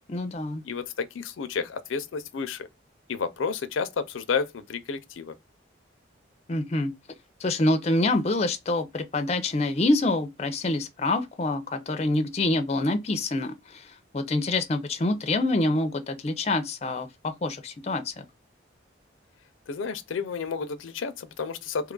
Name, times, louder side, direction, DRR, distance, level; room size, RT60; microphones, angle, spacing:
voice 1, 0.1-0.6 6.5-6.9 7.4-18.2, left 2 dB, 35° left, 0.4 m, -26 dB
voice 2, 0.6-2.7 3.1-5.3 19.7-21.9, left 5 dB, 85° left, 0.5 m, -31 dB
2.9 x 2.3 x 3.7 m
head